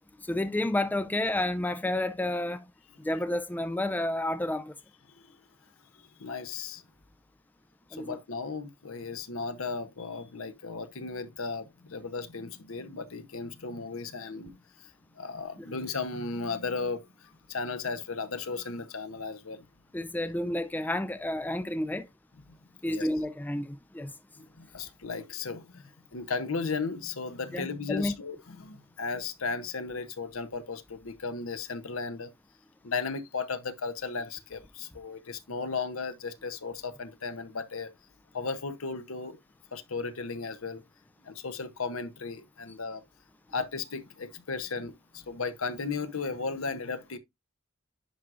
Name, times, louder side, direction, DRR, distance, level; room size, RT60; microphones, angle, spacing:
voice 1, 0.2-2.7 3.0-4.7 7.9-8.2 15.6-15.7 19.9-22.1 22.8-24.1 27.5-28.1, left 1 dB, 10° left, 0.3 m, -30 dB
voice 2, 5.9-6.8 7.9-19.7 22.5-22.6 22.9-23.1 24.0-32.3 32.8-37.9 38.3-39.4 39.7-40.8 41.2-43.0 43.5-47.2, left 4 dB, 75° left, 0.9 m, -35 dB
10.5 x 4.8 x 2.5 m
head